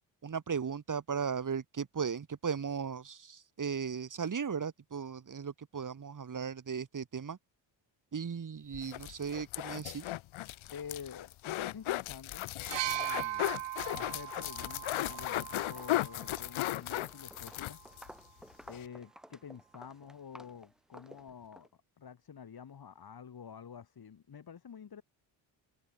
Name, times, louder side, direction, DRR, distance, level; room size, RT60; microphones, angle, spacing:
voice 1, 0.2-7.4 8.1-10.1, right 6 dB, 40° right, 3.3 m, -36 dB
sound 1, 8.7-18.1 18.4-18.5 18.7-18.9, left 16 dB, 75° left, 1.9 m, -36 dB
voice 2, 10.7-12.5 12.8-13.4 13.9-17.8 18.7-21.7 22.0-25.0, left 7 dB, 50° left, 5.6 m, -48 dB
sound 2, 12.7-16.5 17.5-17.7, right 14 dB, 60° right, 1.0 m, -39 dB
Walk footsteps, 15.0-15.3 15.6-21.7, equal, ahead, 5.4 m, -54 dB
supercardioid pair, 65°, 48 cm